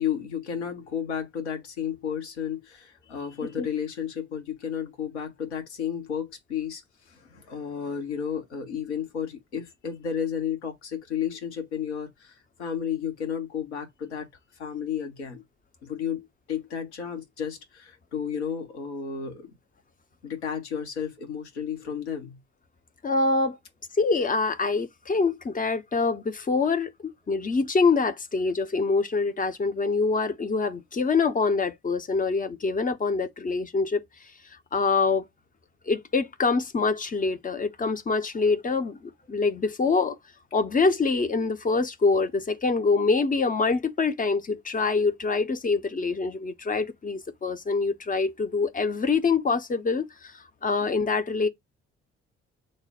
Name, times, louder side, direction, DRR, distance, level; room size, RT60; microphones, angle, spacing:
voice 1, 0.0-14.3 14.6-15.4 15.8-19.5 20.2-22.4, left 8 dB, 80° left, 0.8 m, -32 dB
voice 2, 23.0-23.6 23.9-34.0 34.7-35.3 35.9-40.2 40.5-51.5, left 4 dB, 25° left, 0.5 m, -25 dB
3.2 x 2.0 x 4.0 m
figure-of-eight pair, 40°, 33 cm